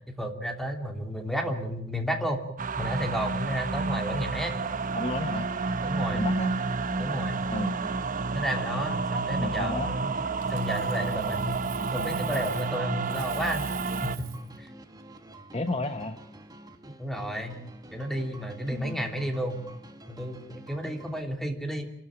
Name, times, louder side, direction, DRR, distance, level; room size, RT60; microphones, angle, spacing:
voice 1, 0.1-2.4 2.8-4.6 5.8-6.2 7.0-7.4 8.3-10.1 10.5-11.6 11.9-13.7 14.0-14.7 17.0-17.6 17.9-19.6 20.1-21.8, equal, ahead, 3 dB, 3.1 m, -32 dB
sound 1, 2.6-14.2, right 4 dB, 45° right, 0.9 m, -30 dB
sound 2, 4.6-21.2, right 1 dB, 20° right, 1.7 m, -49 dB
voice 2, 4.9-5.5 6.1-6.6 7.5-7.8 9.4-9.9 15.5-16.2 18.7-19.1, left 2 dB, 30° left, 8 dB, 1.0 m, -32 dB
Coin (dropping), 10.4-12.8 13.0-14.5 17.3-17.5, right 14 dB, 75° right, 2.6 m, -46 dB
28.5 x 13.0 x 8.9 m, 0.75 s
head